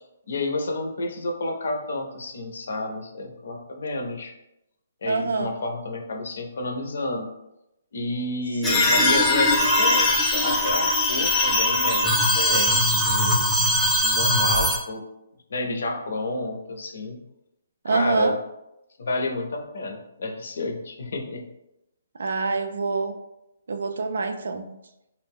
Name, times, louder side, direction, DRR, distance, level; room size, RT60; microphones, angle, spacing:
voice 1, 0.3-4.3 5.0-7.3 7.9-13.5 14.0-15.0 15.5-17.2 17.9-18.4 19.0-21.5, left 2 dB, 70° left, 3 dB, 0.5 m, -30 dB
voice 2, 5.1-5.5 8.6-9.0 17.8-18.3 22.2-23.1 23.7-24.7, right 4 dB, 75° right, 6 dB, 0.3 m, -26 dB
sound 1, 8.6-14.8, left 1 dB, 5° left, 0.3 m, -21 dB
2.4 x 2.0 x 3.5 m, 0.87 s
hypercardioid pair, 155°, 0 cm